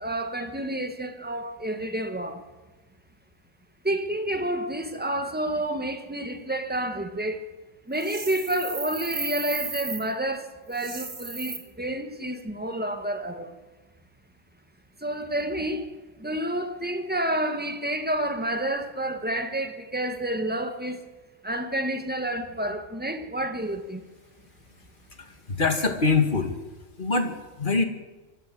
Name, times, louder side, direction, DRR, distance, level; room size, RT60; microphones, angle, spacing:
voice 1, 0.0-2.4 3.8-7.4 7.9-13.5 15.0-15.9 16.2-21.0 21.4-24.0, right 1 dB, 10° right, 1.6 m, -29 dB
sound 1, 8.0-10.0 10.7-11.6, right 3 dB, 80° right, 2.8 m, -34 dB
voice 2, 25.2-26.5 27.0-27.8, left 3 dB, 40° left, 2.2 m, -24 dB
24.0 x 14.0 x 7.8 m
omnidirectional pair, 1.3 m